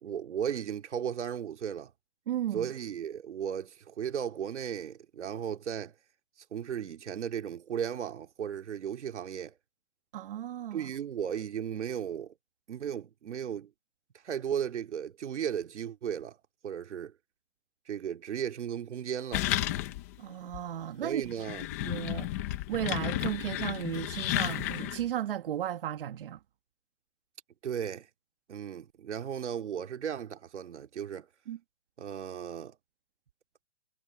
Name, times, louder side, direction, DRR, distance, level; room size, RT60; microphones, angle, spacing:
voice 1, 0.0-1.9 2.5-5.9 6.5-9.5 10.7-12.3 12.7-13.7 14.2-16.4 16.6-17.1 17.9-19.5 21.0-21.7 27.6-28.1 28.5-31.3 32.0-32.8, right 8 dB, 80° right, 2.3 m, -35 dB
voice 2, 2.3-2.7 10.1-10.9 20.2-21.3 21.8-22.3 22.7-26.4 31.5-31.6, right 11 dB, 50° right, 1.6 m, -34 dB
sound 1, 19.3-20.2 20.5-20.6 21.2-25.0, left 15 dB, 15° left, 0.7 m, -32 dB
hypercardioid pair, 175°, 34 cm